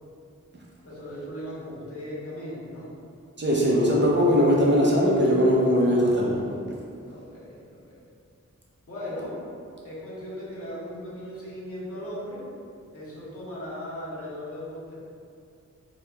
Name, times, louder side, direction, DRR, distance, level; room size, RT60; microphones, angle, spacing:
voice 1, 0.8-2.9 7.0-7.7 8.9-9.4 9.8-12.5 12.9-15.0, equal, 50° left, -9 dB, 1.2 m, -37 dB
voice 2, 3.4-6.4, equal, 40° right, -4 dB, 0.6 m, -20 dB
3.9 x 3.0 x 2.2 m, 2.4 s
wide cardioid pair, 60°, 30 cm